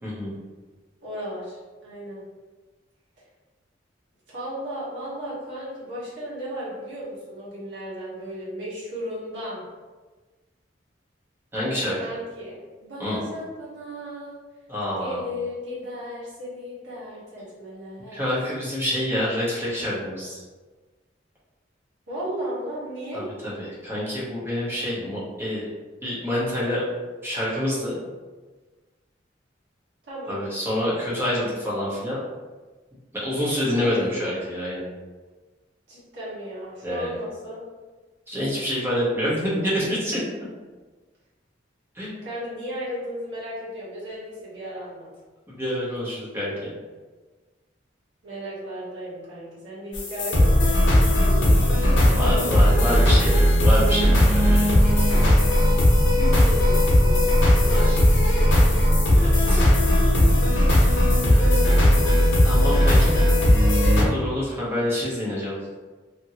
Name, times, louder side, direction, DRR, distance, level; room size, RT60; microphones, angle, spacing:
voice 1, 0.0-0.3 11.5-12.2 13.0-13.2 14.7-15.2 18.1-20.4 23.1-25.6 26.0-26.8 27.2-28.0 30.3-32.2 33.1-34.8 36.8-37.1 38.3-40.2 41.9-42.2 45.5-46.7 52.1-55.0 57.7-58.0 59.2-59.7 60.2-60.3 62.4-63.2 64.0-65.5, equal, 15° right, -8 dB, 1.0 m, -27 dB
voice 2, 1.0-2.3 4.3-9.6 12.0-14.4 15.0-18.3 22.1-23.3 30.1-30.4 33.8-34.5 35.9-37.6 42.2-45.1 48.2-53.4 56.1-58.0 58.4-58.8 61.2-62.4 62.7-62.9 63.2-63.3 63.6-64.2, equal, 85° right, -9 dB, 1.3 m, -35 dB
sound 1, 49.9-64.0, left 1 dB, 85° left, 0.8 m, -17 dB
2.7 x 2.7 x 2.8 m, 1.3 s
head